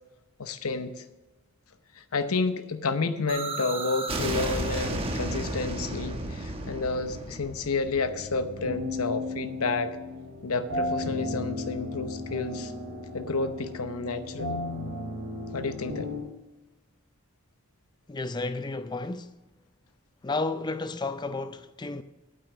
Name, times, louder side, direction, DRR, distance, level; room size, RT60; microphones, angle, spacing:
voice 1, 0.4-1.0 2.0-10.0 10.4-12.7 13.1-14.6 15.5-16.1, left 3 dB, 80° left, 0.8 m, -30 dB
sound 1, 3.3-9.0, right 1 dB, 25° right, 1.1 m, -33 dB
sound 2, 8.0-16.2, left 2 dB, 45° right, 1.9 m, -35 dB
voice 2, 18.1-19.3 20.2-22.0, left 3 dB, 20° left, 0.4 m, -32 dB
9.1 x 8.7 x 6.0 m
head